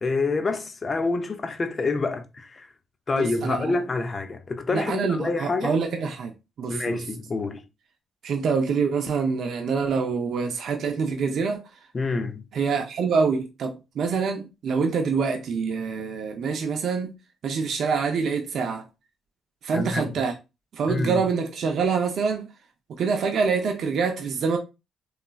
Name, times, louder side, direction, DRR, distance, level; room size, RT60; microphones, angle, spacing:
voice 1, 0.0-2.7 3.1-5.8 6.7-7.6 11.9-12.4 19.7-20.2 20.9-21.2, left 3 dB, 40° left, 0.5 m, -27 dB
voice 2, 3.1-3.8 4.7-6.3 6.6-7.0 8.2-11.6 12.5-17.1 17.4-18.8 19.6-20.3 20.7-22.5 22.9-24.6, right 5 dB, 65° right, 0.4 m, -25 dB
2.9 x 2.3 x 2.3 m
supercardioid pair, 60°, 0 cm